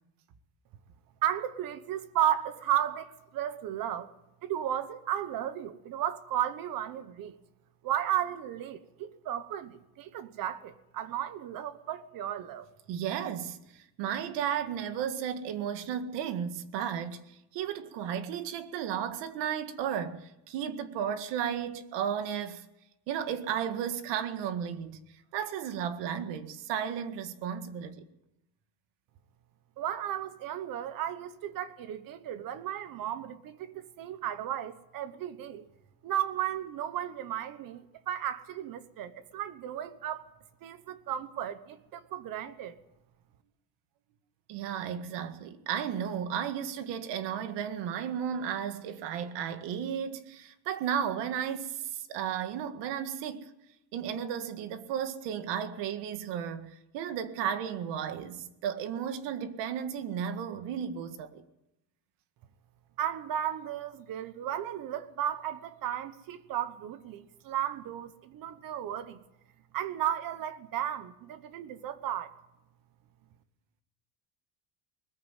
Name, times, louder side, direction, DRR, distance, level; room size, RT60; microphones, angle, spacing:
voice 1, 1.2-4.1 4.4-7.3 7.8-12.7 29.8-35.6 36.0-40.3 40.6-42.7 63.0-69.2 69.7-72.3, right 11 dB, 50° right, 1.2 m, -34 dB
voice 2, 12.9-22.7 23.1-25.0 25.3-28.1 44.5-53.5 53.9-61.4, right 8 dB, 70° right, 1.9 m, -34 dB
20.5 x 15.0 x 9.1 m
cardioid pair, 165°, 44 cm